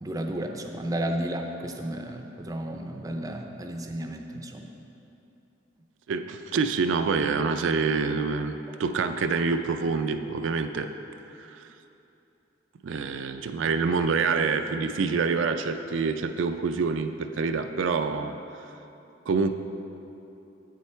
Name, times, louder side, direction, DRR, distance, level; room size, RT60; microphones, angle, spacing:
voice 1, 0.0-4.7, right 1 dB, 20° right, 4 dB, 0.5 m, -33 dB
voice 2, 6.1-10.9 11.5-11.6 12.8-18.3 19.3-19.5, right 4 dB, 75° right, 8 dB, 0.4 m, -26 dB
8.0 x 7.4 x 4.5 m, 2.8 s
head